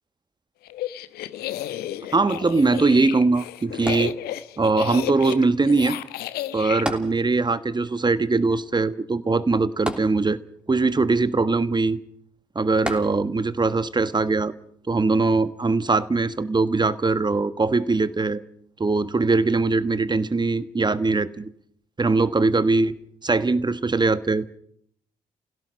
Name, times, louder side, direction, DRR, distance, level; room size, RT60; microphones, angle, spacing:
sound 1, 0.7-6.8, left 13 dB, 70° left, 1.0 m, -32 dB
voice 1, 2.1-4.1 4.6-6.0 6.5-10.4 10.7-12.0 12.5-14.5 14.9-18.4 18.8-21.5 22.0-23.0 23.2-24.4, right 3 dB, 25° right, 14 dB, 1.4 m, -21 dB
sound 2, 3.9-4.8 6.9-7.7 8.0-8.1 9.9-10.7 12.9-13.6 14.3-14.4, equal, 5° right, 3.1 m, -33 dB
29.5 x 17.0 x 6.3 m, 0.65 s
figure-of-eight pair, 40°, 17 cm